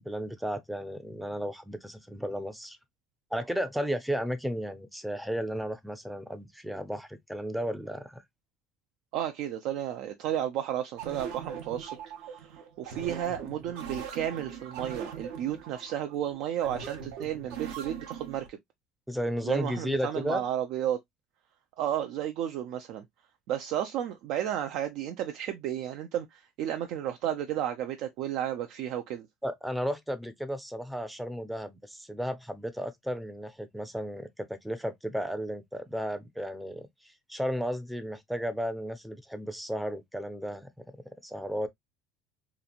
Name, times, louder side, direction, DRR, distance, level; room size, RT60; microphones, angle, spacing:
voice 1, 0.0-2.8 3.3-8.2 19.1-20.5 29.4-41.7, equal, ahead, 0.5 m, -34 dB
voice 2, 9.1-18.6 19.4-21.0 21.8-23.0 23.5-29.3, right 11 dB, 65° right, 0.4 m, -33 dB
sound 1, 11.0-18.5, right 7 dB, 85° right, 0.8 m, -41 dB
2.9 x 2.4 x 2.4 m
cardioid pair, 125°, 0 cm